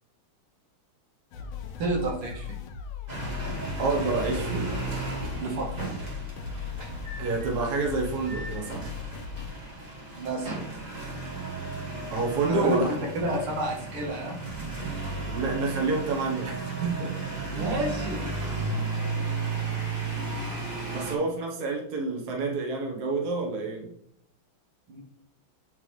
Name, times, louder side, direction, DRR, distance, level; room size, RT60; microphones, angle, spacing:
sound 1, 1.3-9.5, left 6 dB, 85° left, 1.6 m, -38 dB
voice 1, 1.8-2.6 5.4-5.8 10.1-10.6 12.5-14.4 17.5-18.3 21.1-21.2 24.9-25.0, right 2 dB, 85° right, 0 dB, 2.3 m, -30 dB
sound 2, 3.1-21.2, right 3 dB, 30° right, 0.9 m, -34 dB
voice 2, 3.8-4.7 7.2-8.9 12.1-13.0 15.3-17.1 17.5-17.7 20.9-23.9, right 3 dB, 50° right, 0 dB, 1.7 m, -28 dB
9.2 x 3.4 x 3.2 m, 0.69 s
omnidirectional pair, 2.4 m